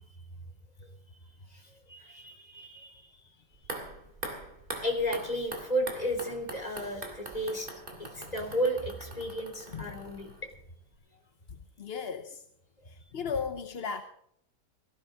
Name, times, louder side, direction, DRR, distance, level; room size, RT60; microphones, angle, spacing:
voice 1, 1.5-3.3 4.8-7.7 8.0-10.3 12.8-12.9, equal, 20° left, 3.7 m, -33 dB
sound 1, 3.5-10.7 10.9-11.0, right 2 dB, 30° right, 2.7 m, -43 dB
voice 2, 11.5-12.4 12.9-14.0, left 6 dB, 45° left, 0.9 m, -36 dB
18.0 x 16.0 x 3.9 m
omnidirectional pair, 1.9 m